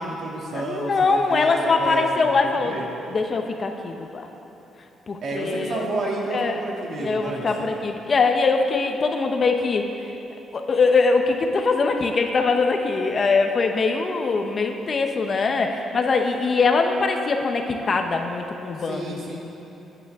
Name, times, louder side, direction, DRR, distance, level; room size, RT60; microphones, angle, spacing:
voice 1, 0.0-2.9 5.2-7.7 18.8-19.4, right 2 dB, 55° right, -3 dB, 2.5 m, -30 dB
voice 2, 0.5-2.8 3.1-4.3 5.1-5.9 6.3-6.6 7.0-9.9 10.5-19.2, left 4 dB, 35° left, 4 dB, 0.8 m, -22 dB
21.0 x 9.1 x 3.6 m, 3.0 s
cardioid pair, 140°, 0 cm